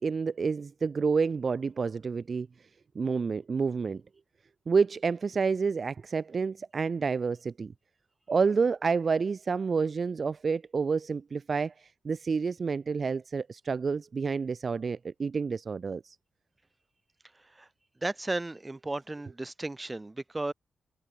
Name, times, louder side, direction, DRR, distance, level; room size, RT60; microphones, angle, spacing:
voice 1, 0.0-2.5 2.9-4.0 4.7-7.7 8.3-16.2, right 5 dB, 50° right, 0.8 m, -29 dB
voice 2, 18.0-20.5, right 2 dB, 20° right, 2.5 m, -34 dB
cardioid pair, 70°, 0 cm